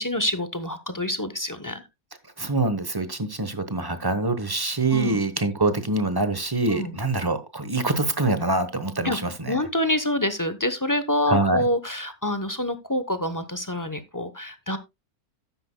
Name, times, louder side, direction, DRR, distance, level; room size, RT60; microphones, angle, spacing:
voice 1, 0.0-1.8 4.9-5.2 6.7-7.0 9.0-9.2 9.5-14.8, left 1 dB, 20° left, 0.6 m, -26 dB
voice 2, 2.4-9.6 11.3-11.6, right 2 dB, 20° right, 0.9 m, -25 dB
13.0 x 10.0 x 2.2 m
omnidirectional pair, 1.5 m